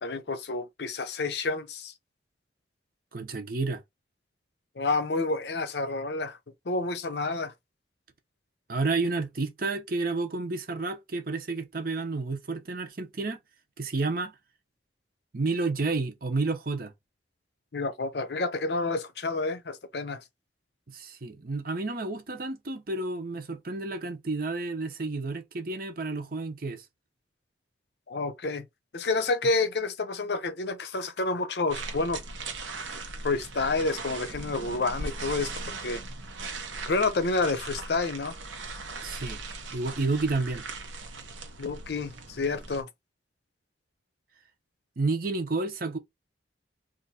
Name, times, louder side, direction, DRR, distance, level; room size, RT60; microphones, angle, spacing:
voice 1, 0.0-1.9 4.8-6.4 6.7-7.5 17.7-20.2 28.1-28.6 28.9-32.2 33.2-35.5 35.8-36.0 36.9-38.3 41.6-42.9, left 3 dB, 60° left, 0.6 m, -29 dB
voice 2, 3.1-3.8 8.7-13.4 13.8-14.3 15.3-16.9 20.9-26.8 39.0-39.4 39.7-40.7 45.0-46.0, right 3 dB, 50° right, 0.8 m, -30 dB
sound 1, 31.7-42.8, right 3 dB, 85° right, 0.9 m, -39 dB
2.9 x 2.5 x 4.1 m
head